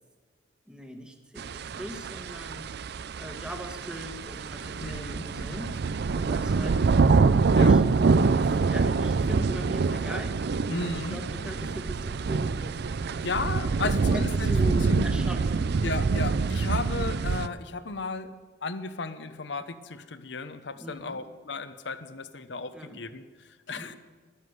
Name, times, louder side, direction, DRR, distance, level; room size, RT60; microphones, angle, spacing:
voice 1, 0.7-2.7 3.2-5.7 6.1-7.1 7.6-7.8 8.4-10.4 10.9-12.8 14.1-15.7 20.7-21.2 22.7-23.0 23.7-24.0, equal, 5° right, 3 dB, 1.3 m, -40 dB
sound 1, 1.4-17.5, right 4 dB, 60° right, 0.4 m, -25 dB
voice 2, 4.8-5.6 7.5-7.8 10.7-11.5 13.2-15.0 15.8-18.3 18.6-24.0, left 3 dB, 65° left, 12 dB, 0.8 m, -35 dB
13.0 x 11.5 x 8.0 m, 1.4 s
head